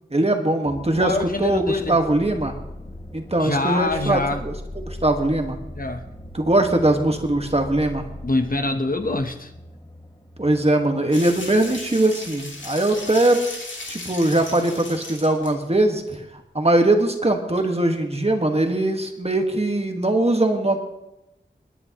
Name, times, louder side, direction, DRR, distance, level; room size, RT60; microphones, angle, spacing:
voice 1, 0.1-1.1 1.4-2.6 3.1-4.5 4.8-5.6 6.3-8.0 10.4-13.4 13.9-16.2 16.5-20.8, right 1 dB, 35° right, 4 dB, 1.6 m, -21 dB
sound 1, 0.6-13.7 14.0-14.6, left 1 dB, 30° left, 3.3 m, -40 dB
voice 2, 1.0-2.0 3.4-4.4 5.8-6.0 8.2-9.5, left 2 dB, 50° left, 6 dB, 1.0 m, -24 dB
sound 2, 11.1-15.6 16.1-16.2 17.3-17.4 17.6-17.7, left 2 dB, 90° left, 2.2 m, -36 dB
27.0 x 10.0 x 3.0 m, 0.91 s
wide cardioid pair, 55°, 19 cm